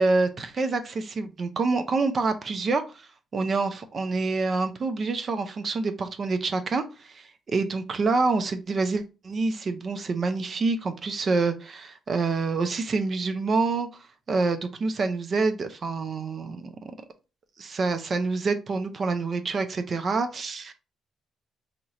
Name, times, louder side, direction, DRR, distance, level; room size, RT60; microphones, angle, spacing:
voice 1, 0.0-13.9 14.3-16.8 17.6-20.7, right 3 dB, 45° right, 8 dB, 0.5 m, -27 dB
2.9 x 2.4 x 4.1 m, 0.30 s
cardioid pair, 90°, 0 cm